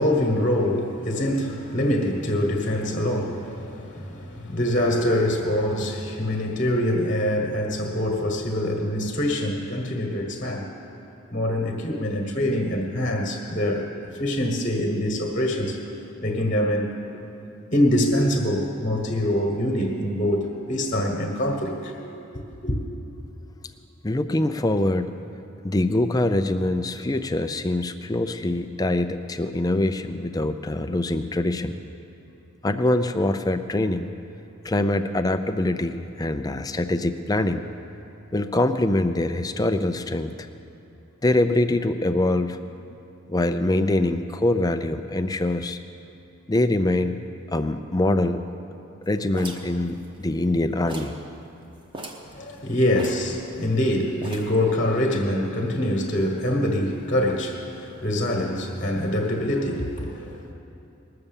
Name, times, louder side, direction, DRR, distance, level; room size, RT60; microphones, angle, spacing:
voice 1, 0.0-10.7 11.3-15.8 16.2-16.9 17.7-22.0 22.5-22.8 52.3-60.5, left 1 dB, 35° left, 1 dB, 1.4 m, -24 dB
voice 2, 24.0-25.1 25.6-31.8 32.6-34.1 34.6-37.6 38.3-40.5 41.2-42.6 43.3-45.8 46.5-47.2 47.5-48.4 49.1-51.2, left 1 dB, 15° left, 8 dB, 0.4 m, -24 dB
sound 1, 49.3-50.5 50.9-51.2 51.5-51.6 51.9-52.3 53.0-53.8 54.2-54.7, right 1 dB, 25° right, 1.0 m, -38 dB
20.0 x 6.7 x 7.2 m, 2.8 s
head